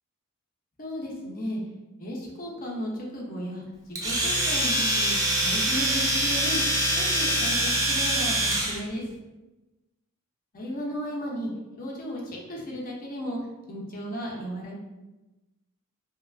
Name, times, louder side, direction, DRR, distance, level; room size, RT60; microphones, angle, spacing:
voice 1, 0.8-1.6 2.0-3.6 4.0-6.6 6.9-9.1 10.5-11.5 11.8-13.4 13.7-14.7, equal, 40° left, -4 dB, 0.6 m, -34 dB
Domestic sounds home sounds, 4.0-8.8, right 1 dB, 15° right, 0.4 m, -24 dB
2.8 x 2.4 x 2.3 m, 1.1 s
head